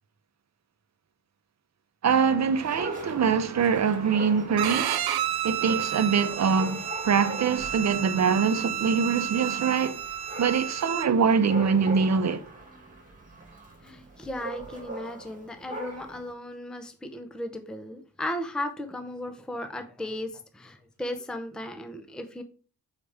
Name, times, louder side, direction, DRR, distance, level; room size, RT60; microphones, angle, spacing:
voice 1, 2.0-5.0 5.4-10.0 10.4-12.4, right 6 dB, 50° right, 0.7 m, -24 dB
Dog, 2.6-16.3, right 1 dB, 20° right, 1.9 m, -41 dB
Bowed string instrument, 4.6-11.1, right 10 dB, 85° right, 0.6 m, -31 dB
voice 2, 13.8-22.4, left 1 dB, ahead, 0.6 m, -36 dB
6.7 x 4.9 x 3.4 m
wide cardioid pair, 150°, 36 cm